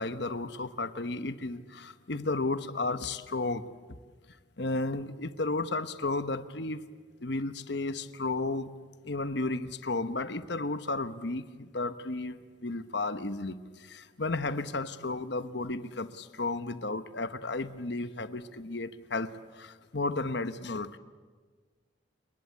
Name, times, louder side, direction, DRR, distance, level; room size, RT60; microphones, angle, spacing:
voice 1, 0.0-3.7 4.6-6.8 7.2-8.7 9.0-21.0, left 2 dB, 60° left, 12 dB, 1.1 m, -33 dB
29.5 x 20.0 x 8.6 m, 1.5 s
head